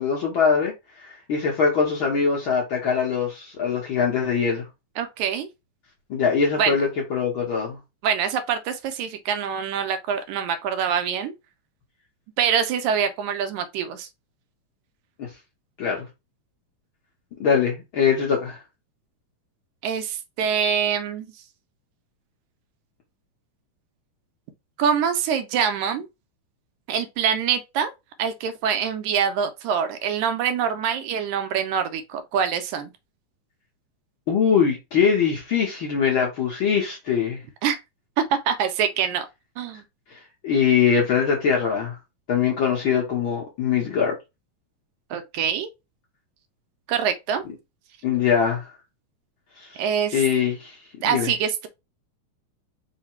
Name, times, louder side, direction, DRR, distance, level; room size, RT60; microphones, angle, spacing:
voice 1, 0.0-4.7 6.1-7.8 15.2-15.3 15.8-16.1 17.4-18.6 34.3-37.4 40.1-42.0 42.3-44.2 48.0-48.7 49.6-49.8 50.1-51.3, left 6 dB, 65° left, 1.3 m, -22 dB
voice 2, 5.0-5.5 6.6-6.7 8.0-11.3 12.4-14.1 19.8-21.3 24.8-26.1 26.9-27.9 28.2-32.9 37.6-37.8 38.3-39.3 39.6-39.8 45.1-45.7 46.9-47.4 49.8-50.2 51.0-51.7, right 7 dB, 80° right, 2.0 m, -25 dB
4.8 x 2.2 x 4.4 m
omnidirectional pair, 3.5 m